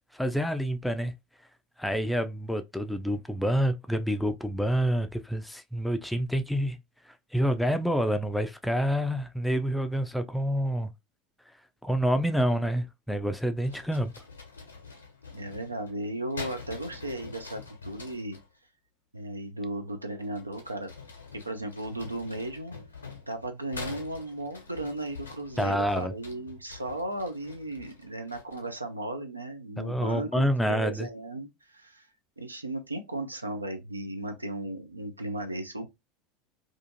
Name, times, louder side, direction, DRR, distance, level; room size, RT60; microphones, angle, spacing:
voice 1, 0.1-1.1 1.8-6.8 7.3-10.9 11.8-14.1 25.6-26.1 29.8-31.1, equal, 5° left, 0.3 m, -27 dB
sound 1, 13.6-18.5 20.2-28.8, left 4 dB, 75° left, 0.6 m, -45 dB
voice 2, 15.3-18.4 19.1-20.9 21.3-22.7 23.3-32.0 32.4-35.9, right 1 dB, 85° right, 0.4 m, -36 dB
2.5 x 2.4 x 2.6 m
figure-of-eight pair, 75°, 0 cm